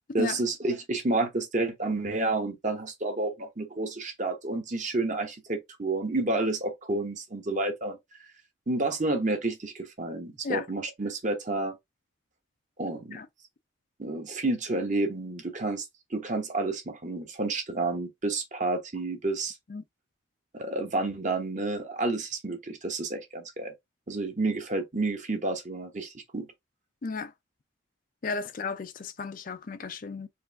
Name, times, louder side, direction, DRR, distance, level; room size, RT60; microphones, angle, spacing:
voice 1, 0.1-8.0 8.7-11.8 12.8-13.2 14.0-15.9 16.1-19.5 20.5-23.7 24.1-26.5, right 2 dB, 40° right, 1.0 m, -30 dB
voice 2, 27.0-27.3 28.2-30.3, left 4 dB, 45° left, 0.4 m, -34 dB
4.5 x 2.5 x 3.5 m
head